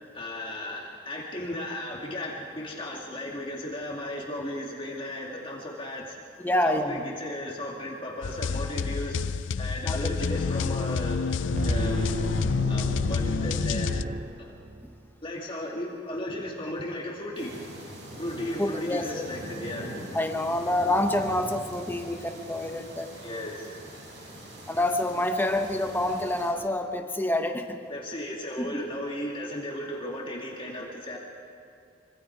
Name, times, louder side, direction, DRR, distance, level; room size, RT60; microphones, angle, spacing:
voice 1, 0.1-6.2 6.6-9.2 9.6-11.2 11.6-12.0 12.7-13.9 14.4-14.6 15.2-17.6 18.2-19.9 23.2-23.7 27.9-31.2, left 1 dB, 30° left, -2 dB, 2.4 m, -35 dB
voice 2, 6.4-7.0 9.8-10.4 14.8-14.9 18.6-19.3 20.1-23.1 24.7-27.8 28.6-28.8, left 1 dB, 10° left, 5 dB, 1.3 m, -27 dB
sound 1, 8.2-14.0, left 5 dB, 85° left, 0.5 m, -28 dB
sound 2, 11.5-15.0, right 1 dB, 40° right, 0.7 m, -33 dB
sound 3, 17.3-26.5, equal, 70° right, 6.9 m, -42 dB
26.0 x 25.0 x 4.7 m, 2.4 s
head